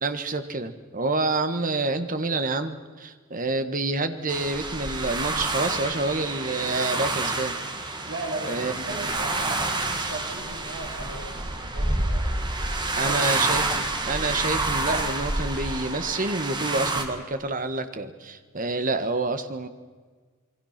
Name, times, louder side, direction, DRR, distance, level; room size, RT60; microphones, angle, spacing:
voice 1, 0.0-7.6 8.4-8.7 13.0-19.7, right 3 dB, 35° right, 9 dB, 1.4 m, -28 dB
sound 1, 4.3-17.0, right 2 dB, 20° right, 1.9 m, -28 dB
voice 2, 8.0-12.3 12.9-13.3 13.6-13.7, right 2 dB, 60° right, -1 dB, 4.0 m, -37 dB
28.0 x 22.0 x 6.0 m, 1.5 s
head